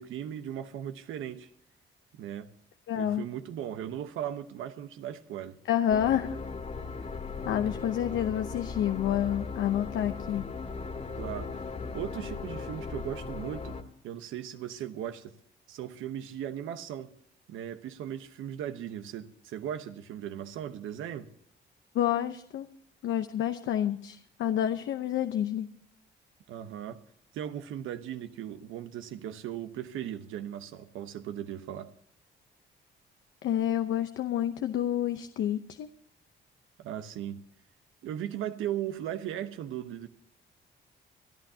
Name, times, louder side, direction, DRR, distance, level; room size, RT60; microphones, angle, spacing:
voice 1, 0.0-1.5 2.1-2.5 3.0-5.6 11.1-11.6 11.9-15.3 15.7-17.1 17.5-21.3 26.5-27.0 27.3-31.9 36.8-37.4 38.0-40.1, right 10 dB, 85° right, 1.0 m, -37 dB
voice 2, 2.9-3.2 5.7-6.4 7.4-10.5 21.9-22.7 23.0-25.7 33.4-35.9, left 10 dB, 75° left, 0.8 m, -29 dB
sound 1, 5.9-13.8, left 4 dB, 35° left, 2.2 m, -38 dB
25.0 x 11.5 x 2.8 m
cardioid pair, 90°, 20 cm